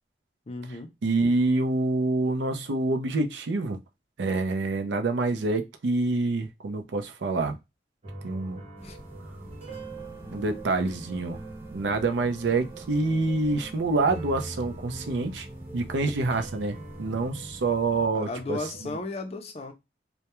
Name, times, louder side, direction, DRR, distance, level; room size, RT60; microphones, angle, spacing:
voice 1, 0.5-0.9 8.8-9.0 18.1-19.7, left 2 dB, 35° left, 0.4 m, -35 dB
voice 2, 1.0-3.8 4.2-7.6 8.2-8.6 10.3-11.4 11.7-15.5 15.7-18.6 18.8-18.9, right 3 dB, 80° right, 0.5 m, -26 dB
sound 1, 8.0-18.8, right 2 dB, 35° right, 0.9 m, -43 dB
sound 2, 8.8-18.1, right 1 dB, 10° right, 0.5 m, -47 dB
2.2 x 2.1 x 2.9 m
head